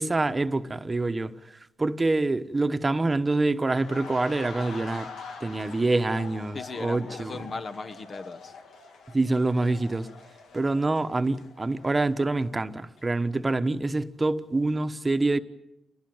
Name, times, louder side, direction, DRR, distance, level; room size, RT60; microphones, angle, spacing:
voice 1, 0.0-1.3 1.8-5.1 5.4-7.4 9.1-10.1 10.5-15.4, right 2 dB, 25° right, 1.1 m, -26 dB
sound 1, 3.6-12.5 12.8-13.0, left 4 dB, 90° left, 3.0 m, -44 dB
voice 2, 6.5-8.5, left 4 dB, 50° left, 1.4 m, -37 dB
28.0 x 19.5 x 7.9 m
cardioid pair, 65°, 0 cm